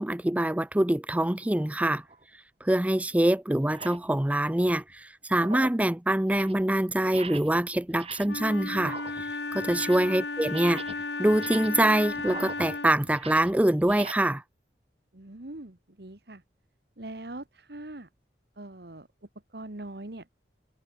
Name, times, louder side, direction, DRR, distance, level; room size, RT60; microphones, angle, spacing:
voice 1, 0.0-2.0 2.6-10.8 11.2-14.4, right 1 dB, 10° right, 0.4 m, -25 dB
sound 1, 2.0-2.2 3.0-3.1 3.6-4.1 4.5-4.9 5.3-5.9 6.2-6.6 7.0-7.6 7.9-8.5 8.7-10.2 10.4-14.1, right 3 dB, 35° right, 6.3 m, -42 dB
Wind instrument woodwind instrument, 8.2-13.1, left 3 dB, 70° left, 3.4 m, -34 dB
voice 2, 15.1-16.4 17.0-18.1 18.5-20.3, right 1 dB, 60° right, 1.7 m, -42 dB
head